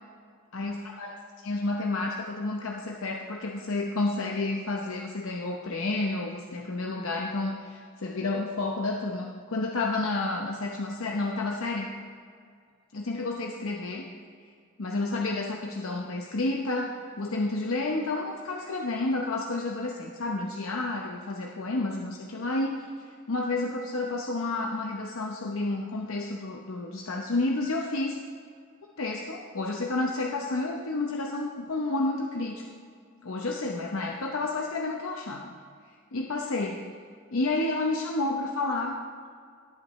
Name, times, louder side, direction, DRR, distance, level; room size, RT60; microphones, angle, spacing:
voice 1, 0.5-1.2 1.4-11.9 12.9-14.1 14.8-22.9 23.3-28.2 29.0-32.6 33.2-35.5 36.1-36.8 37.3-39.0, left 2 dB, 75° left, 0 dB, 0.8 m, -30 dB
17.5 x 8.5 x 3.1 m, 2.2 s
head